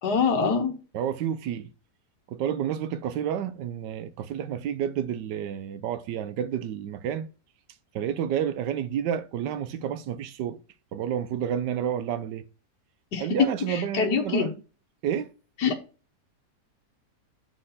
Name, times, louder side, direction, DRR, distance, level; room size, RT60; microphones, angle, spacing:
voice 1, 0.0-0.7 13.1-13.3 13.7-14.5 15.6-15.8, left 5 dB, 70° left, 1.8 m, -25 dB
voice 2, 0.9-1.7 2.3-7.3 7.9-10.6 10.9-12.4 13.2-14.5 15.0-15.3, right 9 dB, 90° right, 1.3 m, -30 dB
7.6 x 4.4 x 5.5 m
omnidirectional pair, 1.8 m